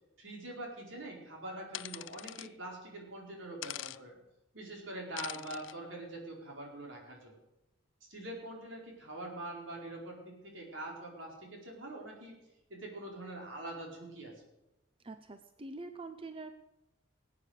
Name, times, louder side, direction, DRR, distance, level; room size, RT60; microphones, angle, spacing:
voice 1, 0.2-4.2 4.5-7.4 8.1-12.4 12.7-14.4, right 1 dB, 75° right, 0 dB, 4.6 m, -44 dB
sound 1, 1.7-2.5 3.6-4.0 5.2-5.7, left 14 dB, 70° left, 0.4 m, -42 dB
voice 2, 15.0-16.5, right 3 dB, 25° right, 9 dB, 0.6 m, -45 dB
20.0 x 8.6 x 6.6 m, 0.92 s
head